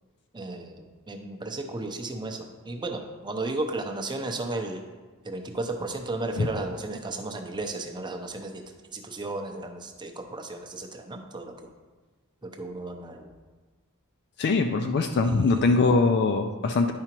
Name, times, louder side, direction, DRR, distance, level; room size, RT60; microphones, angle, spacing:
voice 1, 0.3-4.8 5.2-8.6 8.9-11.5 12.4-13.3 15.2-15.8, right 2 dB, 20° right, 3 dB, 0.6 m, -34 dB
voice 2, 14.4-16.9, left 3 dB, 50° left, 5 dB, 0.4 m, -22 dB
10.5 x 4.8 x 2.9 m, 1.3 s
head